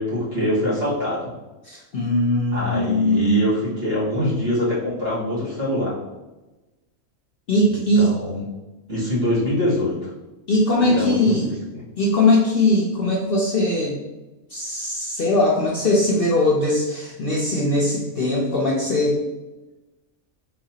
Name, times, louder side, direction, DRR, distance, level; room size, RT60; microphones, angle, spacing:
voice 1, 0.0-1.3 2.5-6.0 7.6-8.5 8.9-10.1 10.9-11.8, left 1 dB, 50° right, -8 dB, 1.9 m, -24 dB
voice 2, 1.6-3.5 7.5-8.1 10.5-11.5 12.0-14.0 14.5-19.2, left 1 dB, 60° left, -3 dB, 0.6 m, -20 dB
4.0 x 2.8 x 2.8 m, 1.1 s
omnidirectional pair, 1.4 m